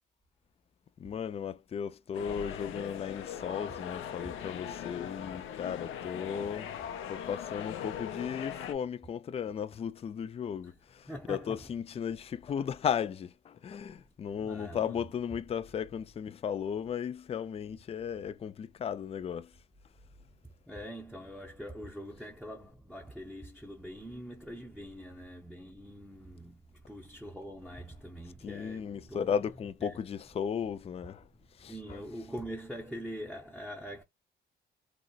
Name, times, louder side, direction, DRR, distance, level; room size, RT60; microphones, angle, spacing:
voice 1, 1.0-6.7 7.1-19.5 28.4-31.3 31.6-32.0, left 7 dB, 30° left, 0.3 m, -35 dB
sound 1, 2.1-8.7, left 9 dB, 85° left, 0.6 m, -40 dB
voice 2, 11.1-11.7 14.4-15.1 20.4-29.4 29.8-30.0 31.7-34.0, equal, ahead, 0.7 m, -44 dB
3.9 x 2.0 x 2.3 m
cardioid pair, 90°, 20 cm